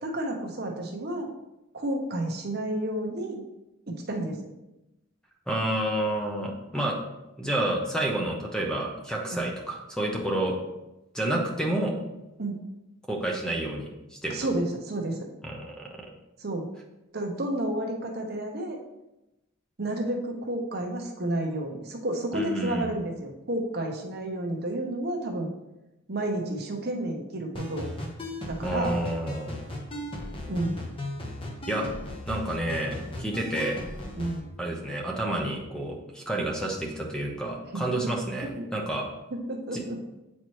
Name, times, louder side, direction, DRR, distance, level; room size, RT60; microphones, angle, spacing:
voice 1, 0.0-1.3 1.7-3.4 3.9-4.4 9.3-9.4 12.4-12.6 14.3-15.3 16.4-16.7 17.1-18.8 19.8-25.5 26.1-27.9 28.5-29.0 30.5-30.8 34.1-34.4 37.7-38.1 38.4-38.7 39.3-40.0, right 1 dB, 50° right, 2 dB, 0.9 m, -31 dB
voice 2, 5.5-7.0 7.4-10.6 11.1-11.9 13.1-14.4 15.4-15.9 22.3-22.9 28.6-29.5 31.7-31.9 32.2-33.8 34.6-39.1 39.7-39.8, right 1 dB, 5° left, 0 dB, 0.8 m, -29 dB
sound 1, 27.5-34.4, left 1 dB, 25° left, 1.0 m, -37 dB
8.3 x 4.3 x 3.1 m, 0.95 s
head